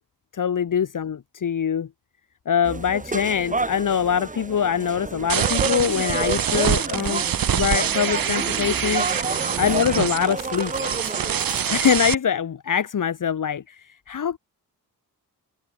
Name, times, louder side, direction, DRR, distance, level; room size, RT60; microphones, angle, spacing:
voice 1, 0.3-1.9 2.5-7.2 7.5-9.1 9.6-11.2 11.7-14.4, left 8 dB, 55° left, 2.6 m, -24 dB
sound 1, 2.6-11.8, right 3 dB, 20° right, 5.8 m, -30 dB
sound 2, 5.3-12.1, right 9 dB, 65° right, 2.4 m, -25 dB
wide cardioid pair, 145°, 38 cm